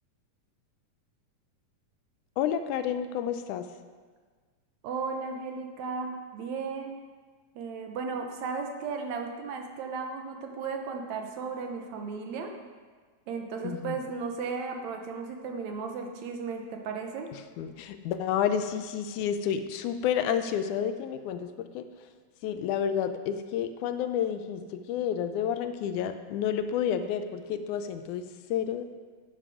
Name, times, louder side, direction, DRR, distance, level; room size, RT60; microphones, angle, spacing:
voice 1, 2.4-3.7 13.6-13.9 17.3-21.9 22.4-28.8, left 8 dB, 80° left, 9 dB, 2.1 m, -30 dB
voice 2, 4.8-7.0 7.6-12.5 13.3-17.3, right 5 dB, 70° right, 3 dB, 2.2 m, -35 dB
11.0 x 9.8 x 4.9 m, 1.5 s
omnidirectional pair, 3.6 m